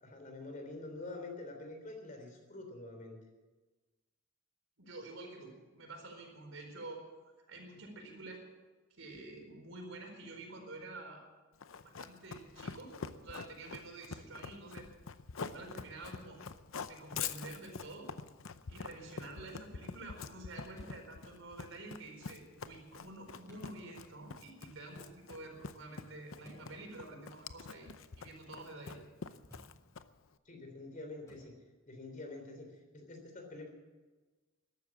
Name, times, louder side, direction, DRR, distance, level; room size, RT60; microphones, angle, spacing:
voice 1, 0.0-3.2 30.5-31.5 31.9-33.7, left 2 dB, 40° left, 4 dB, 3.5 m, -46 dB
voice 2, 4.8-8.4 8.9-11.2 11.8-12.9 13.2-14.9 15.5-16.4 16.8-18.1 18.7-29.0, right 2 dB, 75° right, 2 dB, 4.4 m, -49 dB
Run, 11.6-30.3, left 6 dB, 80° left, 0.7 m, -45 dB
sound 1, 13.0-13.2 15.4-15.7 17.4-17.7 19.4-19.7 20.7-21.0 23.4-23.7 26.4-26.7 29.4-29.7 31.2-31.4, right 1 dB, 15° left, 6.8 m, -56 dB
14.0 x 12.0 x 7.3 m, 1.2 s
head